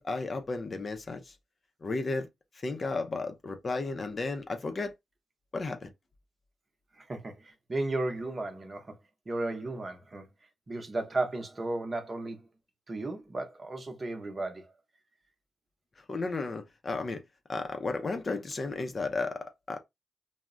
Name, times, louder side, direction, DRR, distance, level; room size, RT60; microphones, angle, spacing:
voice 1, 0.0-1.4 1.8-2.3 2.5-4.9 5.5-5.9 16.0-17.2 17.5-19.8, left 3 dB, 40° left, 0.5 m, -33 dB
voice 2, 6.9-8.9 9.3-10.3 10.7-12.5 12.9-14.7, right 2 dB, 35° right, 0.7 m, -34 dB
2.2 x 2.0 x 3.5 m
cardioid pair, 70°, 0 cm